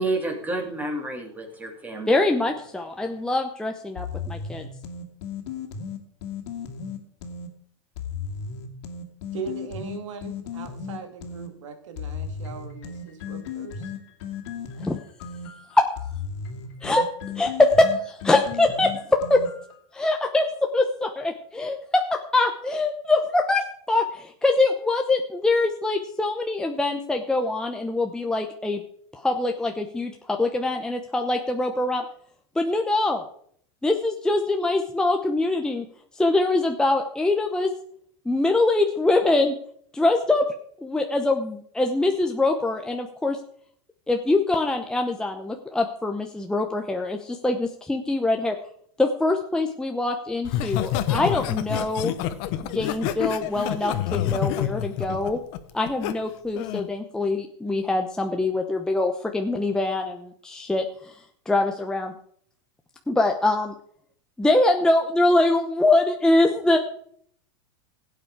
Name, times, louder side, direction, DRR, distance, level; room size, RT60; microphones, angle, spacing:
voice 1, 0.0-2.1, right 2 dB, 10° right, 2 dB, 2.7 m, -29 dB
voice 2, 2.1-4.7 14.8-15.0 15.7-15.9 16.8-17.0 17.4-19.4 19.9-28.8 29.1-32.0 32.6-33.2 33.8-35.9 36.1-37.7 38.3-39.6 39.9-40.5 40.8-43.4 44.1-48.6 49.0-52.1 52.6-55.4 55.7-61.2 61.5-62.2 63.1-63.7 64.4-66.8, left 2 dB, 5° left, 3 dB, 0.8 m, -23 dB
sound 1, 4.0-7.5 8.0-11.5 12.0-19.8, left 6 dB, 70° left, 2.4 m, -35 dB
voice 3, 9.3-13.9, right 5 dB, 90° right, 5 dB, 2.8 m, -39 dB
Laughter, 50.4-56.1 56.6-56.9, left 11 dB, 50° left, 1.2 m, -27 dB
16.5 x 8.3 x 4.8 m, 0.62 s
supercardioid pair, 140°, 15 cm